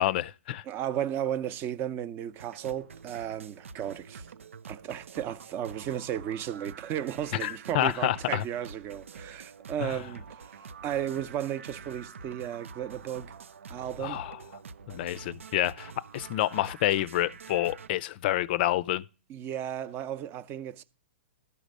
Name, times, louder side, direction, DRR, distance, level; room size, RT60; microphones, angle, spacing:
voice 1, 0.0-0.6 7.4-8.4 9.8-10.0 14.0-14.4 14.9-19.0, left 14 dB, 50° left, 0.4 m, -28 dB
voice 2, 0.7-4.3 4.7-13.3 13.7-14.2 19.3-20.8, right 10 dB, 30° right, 0.6 m, -34 dB
sound 1, 2.3-17.9, right 5 dB, 85° right, 0.5 m, -47 dB
12.0 x 5.1 x 6.5 m
hypercardioid pair, 125°, 7 cm